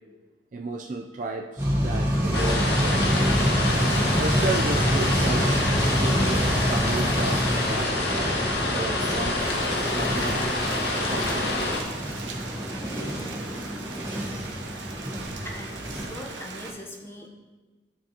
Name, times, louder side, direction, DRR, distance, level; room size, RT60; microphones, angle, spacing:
voice 1, 0.5-3.3 4.1-5.6 6.0-9.5 9.9-10.6 11.1-11.7, right 3 dB, 45° right, 2 dB, 0.4 m, -33 dB
sound 1, 1.6-16.0, equal, 15° right, 1.4 m, -27 dB
sound 2, 2.3-11.8, left 2 dB, 65° left, 1.1 m, -27 dB
Rain, 9.4-16.7, right 3 dB, 80° right, 0.8 m, -39 dB
voice 2, 15.4-17.3, left 1 dB, 15° left, 0 dB, 0.8 m, -41 dB
12.0 x 4.7 x 2.9 m, 1.3 s
head